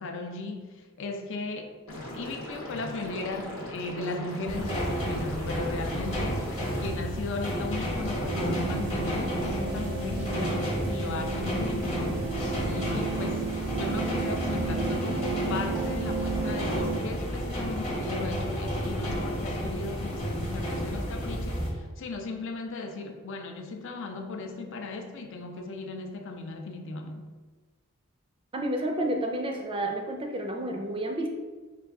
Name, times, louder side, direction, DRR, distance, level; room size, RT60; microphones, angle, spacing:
voice 1, 0.0-1.8 2.2-12.2 12.6-27.3, left 3 dB, 65° left, 4 dB, 0.5 m, -36 dB
Liquid, 1.9-6.9, left 1 dB, 85° left, 0.9 m, -39 dB
sound 1, 4.5-21.7, equal, 30° left, 1.0 m, -31 dB
sound 2, 8.2-17.0, right 6 dB, 90° right, 0.4 m, -34 dB
voice 2, 28.5-31.3, right 1 dB, 25° right, 3 dB, 0.4 m, -30 dB
4.7 x 2.3 x 3.4 m, 1.3 s
head